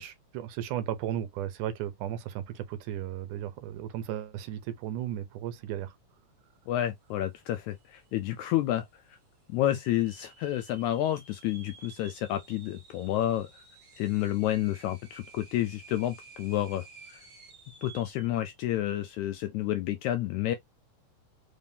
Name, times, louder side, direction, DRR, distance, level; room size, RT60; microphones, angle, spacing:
voice 1, 0.0-6.0, right 11 dB, 80° right, 2.0 m, -35 dB
voice 2, 6.7-9.2 9.5-13.7 14.0-17.2 17.8-20.6, left 13 dB, 80° left, 1.7 m, -30 dB
sound 1, 7.4-7.5 7.7-8.3 8.8-8.9 9.6-18.4, right 4 dB, 30° right, 1.6 m, -53 dB
5.1 x 3.5 x 2.7 m
omnidirectional pair, 3.8 m